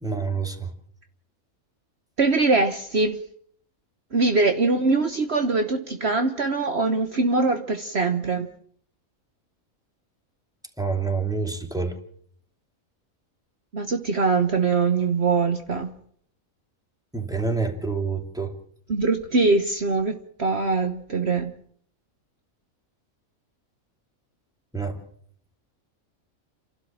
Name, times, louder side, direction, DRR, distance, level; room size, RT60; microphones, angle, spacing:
voice 1, 0.0-0.7 10.8-11.9 17.1-18.5 24.7-25.0, right 4 dB, 5° right, 3 dB, 2.6 m, -27 dB
voice 2, 2.2-3.2 4.1-8.5 13.7-15.9 18.9-21.5, right 3 dB, 50° right, 6 dB, 1.4 m, -22 dB
30.0 x 12.0 x 7.4 m, 0.63 s
omnidirectional pair, 1.5 m